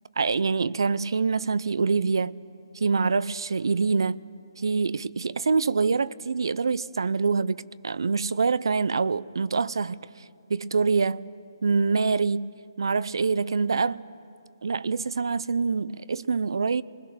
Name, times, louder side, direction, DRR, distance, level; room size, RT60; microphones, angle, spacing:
voice 1, 0.2-2.4 2.8-4.2 4.6-10.0 10.5-11.3 11.6-12.5 12.8-14.0 14.6-16.8, right 4 dB, 75° right, 0.5 m, -25 dB
26.0 x 20.5 x 6.1 m
hypercardioid pair, 160°, 2 cm